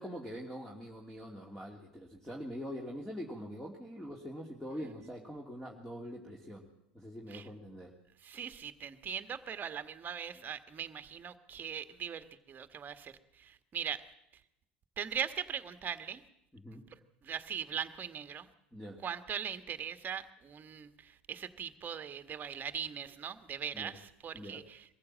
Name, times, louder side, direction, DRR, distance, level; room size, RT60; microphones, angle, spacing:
voice 1, 0.0-6.7 6.9-7.9 8.3-8.5 16.5-16.8 18.7-19.0 23.7-24.0 24.3-24.7, equal, 5° left, 0 dB, 2.8 m, -44 dB
voice 2, 8.2-14.0 15.0-16.2 17.2-18.5 19.0-24.8, right 8 dB, 30° right, 10 dB, 1.6 m, -40 dB
22.5 x 15.0 x 7.6 m, 0.83 s
hypercardioid pair, 85°, 6 cm